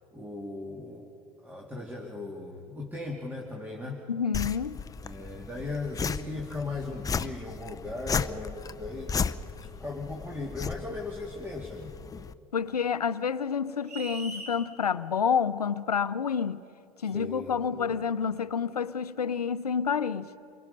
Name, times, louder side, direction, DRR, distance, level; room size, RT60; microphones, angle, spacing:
voice 1, 0.1-1.1 1.4-4.0 5.0-9.1 9.6-11.9 17.0-18.0, left 2 dB, 10° right, 2.4 m, -38 dB
voice 2, 4.1-4.8 12.5-16.6 17.0-20.3, left 6 dB, 80° left, 0.7 m, -28 dB
sound 1, 4.3-12.3, left 6 dB, 20° left, 0.6 m, -35 dB
sound 2, 13.9-14.6, right 2 dB, 85° right, 3.3 m, -40 dB
29.5 x 23.0 x 5.5 m
figure-of-eight pair, 80°, 19 cm